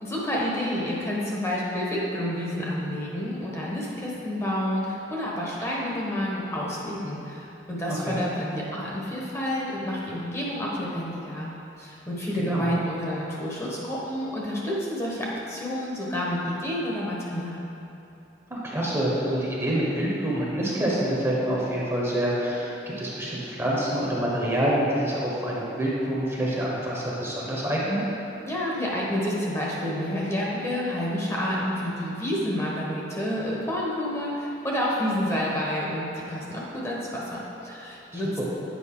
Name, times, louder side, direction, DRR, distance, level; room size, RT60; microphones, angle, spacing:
voice 1, 0.0-11.5 11.8-17.6 28.4-38.4, equal, 15° left, -5 dB, 1.0 m, -29 dB
voice 2, 7.9-8.2 12.4-12.7 18.5-28.0 38.1-38.4, right 1 dB, 15° right, -5 dB, 1.0 m, -27 dB
8.5 x 5.1 x 3.7 m, 2.8 s
head